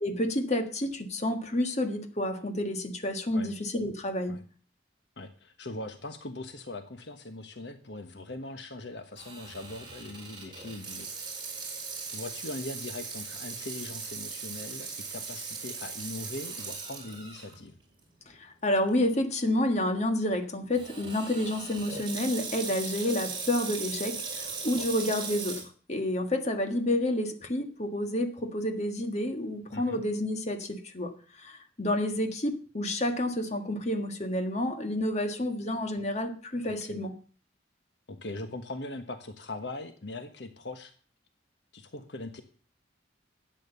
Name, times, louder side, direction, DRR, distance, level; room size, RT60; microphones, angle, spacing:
voice 1, 0.0-4.4 18.3-37.1, left 1 dB, 35° left, 6 dB, 1.6 m, -29 dB
voice 2, 5.2-11.4 12.1-17.8 24.7-24.9 29.7-30.0 36.6-37.0 38.1-40.9 41.7-42.4, left 2 dB, 65° left, 8 dB, 1.3 m, -40 dB
Water tap faucet / Sink (filling or washing), 9.2-17.6 18.0-18.1 18.9-19.2 20.7-25.6, right 5 dB, 25° right, 4.5 m, -39 dB
12.5 x 9.1 x 6.9 m, 0.41 s
head